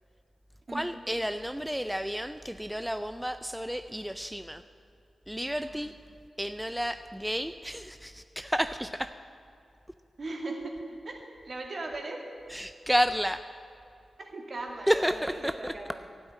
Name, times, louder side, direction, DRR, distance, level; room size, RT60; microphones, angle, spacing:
voice 1, 0.7-4.6 5.3-5.9 6.4-9.1 12.5-13.4 14.9-15.9, equal, 5° right, 10 dB, 0.4 m, -31 dB
voice 2, 10.2-12.3 12.6-12.7 14.2-16.0, right 2 dB, 50° right, 1 dB, 2.2 m, -39 dB
12.5 x 8.0 x 9.7 m, 2.5 s
cardioid pair, 75°, 0 cm